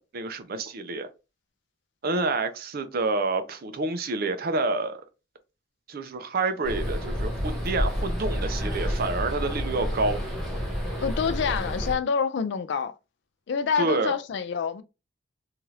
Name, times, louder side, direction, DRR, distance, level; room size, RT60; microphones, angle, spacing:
voice 1, 0.1-1.1 2.0-5.0 5.9-10.2 13.8-14.2, right 3 dB, 50° right, 0.5 m, -28 dB
sound 1, 6.6-12.0, equal, ahead, 1.1 m, -29 dB
voice 2, 11.0-12.9 13.5-14.8, left 6 dB, 60° left, 0.3 m, -27 dB
2.8 x 2.4 x 3.1 m
head